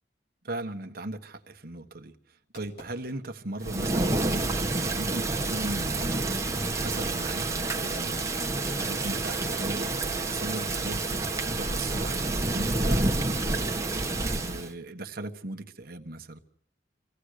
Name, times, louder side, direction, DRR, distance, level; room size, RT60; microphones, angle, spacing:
voice 1, 0.4-13.6 14.3-16.4, right 2 dB, 55° right, 1.4 m, -38 dB
Fireworks, 1.4-3.7 4.1-6.8, left 1 dB, 65° left, 4.3 m, -53 dB
Thunder / Rain, 3.6-14.7, right 2 dB, 15° right, 1.6 m, -28 dB
25.0 x 16.5 x 6.6 m
head